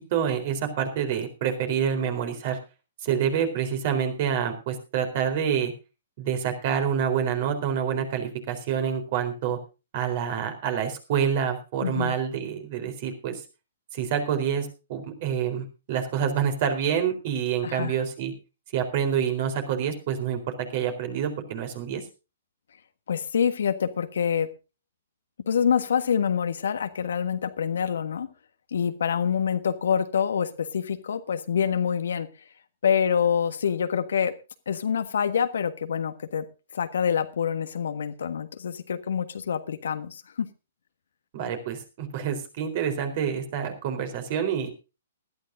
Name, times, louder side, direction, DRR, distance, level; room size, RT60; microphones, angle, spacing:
voice 1, 0.1-2.6 3.0-5.7 6.2-9.6 9.9-13.4 13.9-18.3 18.7-22.0 41.3-44.7, right 8 dB, 45° right, 4.1 m, -27 dB
voice 2, 11.8-12.1 17.6-17.9 23.1-24.5 25.5-28.3 28.7-32.3 32.8-34.3 34.7-36.4 36.7-40.5, left 7 dB, 65° left, 1.4 m, -26 dB
20.0 x 13.0 x 2.7 m
figure-of-eight pair, 120°, 0 cm